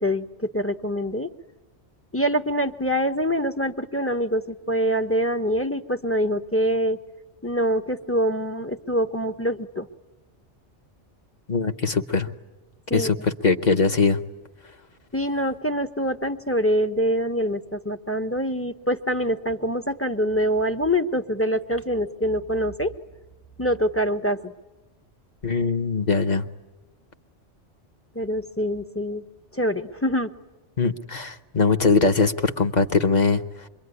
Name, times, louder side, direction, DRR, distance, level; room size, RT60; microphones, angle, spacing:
voice 1, 0.0-1.3 2.1-7.0 7.4-9.9 12.9-13.1 15.1-22.9 23.6-24.5 28.1-29.2 29.5-30.3, equal, 15° left, 5 dB, 0.8 m, -25 dB
voice 2, 11.5-12.3 12.9-14.2 25.4-26.4 30.8-33.7, left 4 dB, 40° left, 6 dB, 1.1 m, -21 dB
26.0 x 23.0 x 9.7 m, 1.1 s
omnidirectional pair, 1.2 m